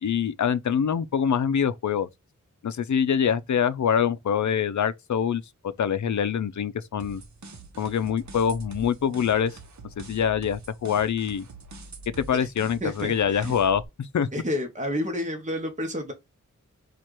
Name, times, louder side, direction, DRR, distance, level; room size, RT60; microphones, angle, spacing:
voice 1, 0.0-2.1 2.6-7.2 7.8-9.6 10.0-11.5 12.2-14.3, left 8 dB, 65° left, 0.5 m, -25 dB
sound 1, 7.0-13.8, right 3 dB, 65° right, 0.9 m, -44 dB
voice 2, 12.8-13.5 14.3-16.1, left 1 dB, 25° right, 1.1 m, -30 dB
4.4 x 2.5 x 4.5 m
wide cardioid pair, 70°, 31 cm